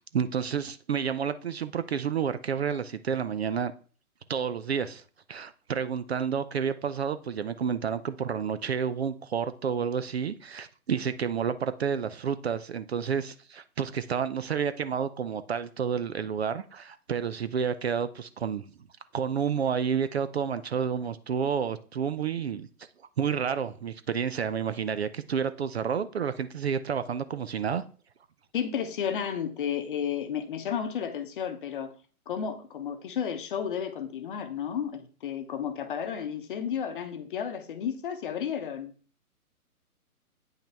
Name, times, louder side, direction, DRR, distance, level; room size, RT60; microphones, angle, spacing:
voice 1, 0.0-3.7 4.3-5.0 5.3-18.6 19.1-22.7 23.2-27.8, right 7 dB, 45° right, 12 dB, 0.6 m, -30 dB
voice 2, 28.5-31.9 32.3-38.9, left 8 dB, 35° left, 8 dB, 0.9 m, -32 dB
9.0 x 5.6 x 3.4 m, 0.40 s
hypercardioid pair, 145°, 45 cm